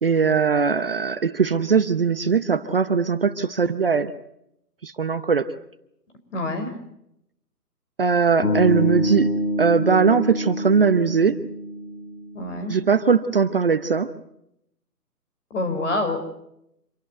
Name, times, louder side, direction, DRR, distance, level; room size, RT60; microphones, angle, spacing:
voice 1, 0.0-4.1 4.8-5.5 8.0-9.3 9.6-11.4 12.7-14.1, right 5 dB, 35° right, 12 dB, 0.8 m, -20 dB
voice 2, 6.3-6.7 12.3-12.7 15.5-16.2, left 2 dB, 45° left, 7 dB, 5.3 m, -26 dB
sound 1, 8.4-12.6, left 1 dB, 65° left, 7.1 m, -26 dB
26.5 x 17.5 x 8.0 m, 0.80 s
figure-of-eight pair, 155°, 49 cm